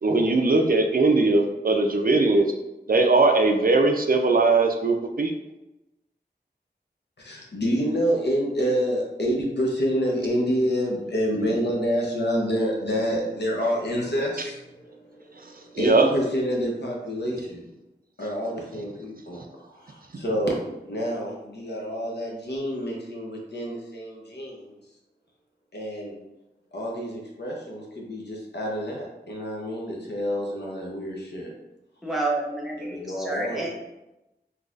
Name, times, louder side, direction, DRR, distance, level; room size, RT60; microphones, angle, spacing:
voice 1, 0.0-2.5 2.9-5.3 15.8-16.1 20.1-20.2, right 3 dB, 55° right, 3 dB, 0.4 m, -20 dB
voice 2, 7.2-17.7 18.2-20.6 20.8-24.8 25.7-26.1 26.7-31.5 32.8-33.7, equal, 70° left, -2 dB, 0.8 m, -28 dB
voice 3, 32.0-33.7, right 2 dB, ahead, -3 dB, 0.9 m, -29 dB
3.8 x 2.8 x 2.4 m, 0.95 s
wide cardioid pair, 55°, 18 cm